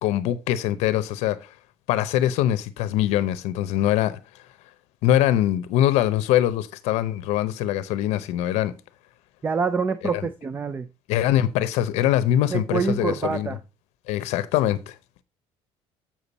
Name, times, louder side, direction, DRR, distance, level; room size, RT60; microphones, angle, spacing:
voice 1, 0.0-1.5 1.9-4.2 5.0-8.7 10.1-10.2 11.1-13.6 14.1-14.9, left 12 dB, 75° left, 0.7 m, -23 dB
voice 2, 9.4-10.9 12.5-13.6, right 5 dB, 15° right, 0.4 m, -26 dB
7.6 x 6.9 x 4.1 m
cardioid pair, 160°, 11 cm